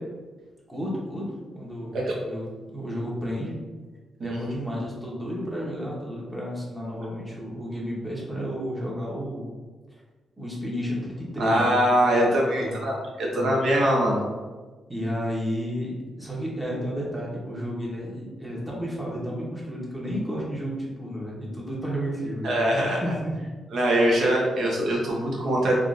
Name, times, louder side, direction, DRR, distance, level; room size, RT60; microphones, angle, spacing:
voice 1, 0.7-1.3 1.5-2.0 2.2-2.5 2.7-3.5 4.2-9.5 10.4-11.7 12.5-12.8 13.3-13.8 14.9-23.3, equal, 10° right, -5 dB, 0.8 m, -32 dB
voice 2, 11.4-14.2 22.4-23.0 23.7-25.7, right 1 dB, 70° right, -2 dB, 0.8 m, -22 dB
3.6 x 2.3 x 2.4 m, 1.3 s
cardioid pair, 120°, 0 cm